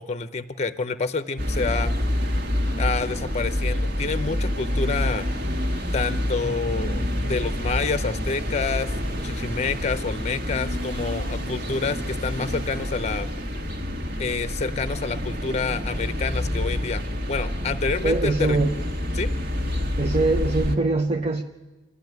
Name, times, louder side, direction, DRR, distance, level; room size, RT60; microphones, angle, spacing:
voice 1, 0.0-1.9 2.8-5.3 5.9-8.9 9.2-13.3 14.2-18.6 19.1-19.3, left 4 dB, 35° left, 12 dB, 0.7 m, -28 dB
sound 1, 1.4-20.8, left 1 dB, 55° right, 1.9 m, -27 dB
voice 2, 18.0-18.7 20.0-21.4, right 2 dB, 35° right, 5 dB, 0.7 m, -22 dB
27.0 x 13.0 x 9.3 m, 1.2 s
head